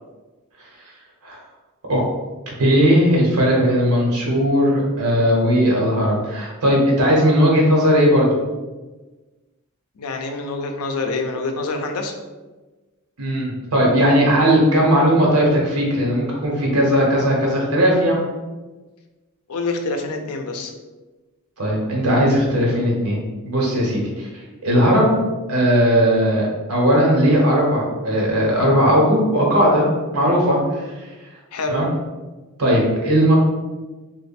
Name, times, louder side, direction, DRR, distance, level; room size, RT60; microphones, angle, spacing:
voice 1, 2.6-8.4 13.2-18.2 21.6-24.3 24.6-25.1 25.5-29.9 30.1-30.9 31.7-31.9 32.6-33.3, equal, 85° right, -2 dB, 1.2 m, -17 dB
voice 2, 10.0-12.1 19.5-20.7 31.5-31.8, left 3 dB, 90° left, 4 dB, 0.5 m, -26 dB
3.2 x 2.5 x 4.1 m, 1.2 s
head